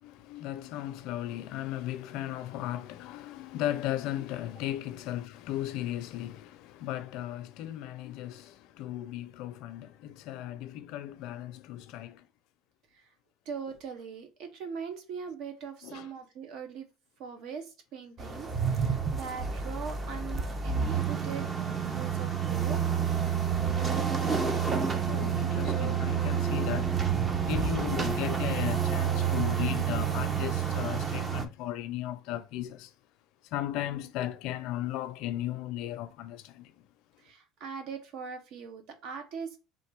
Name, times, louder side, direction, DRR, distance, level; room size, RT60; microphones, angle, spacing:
voice 1, 0.0-12.3 15.8-16.1 24.6-24.8 25.1-32.9 33.5-36.7, left 13 dB, 65° left, 0.5 m, -36 dB
voice 2, 13.4-16.9 17.2-21.5 21.8-23.3 37.2-39.6, right 6 dB, 65° right, 1.0 m, -41 dB
sound 1, 18.2-31.4, right 7 dB, 25° right, 0.6 m, -29 dB
3.6 x 2.6 x 4.6 m
cardioid pair, 130°, 0 cm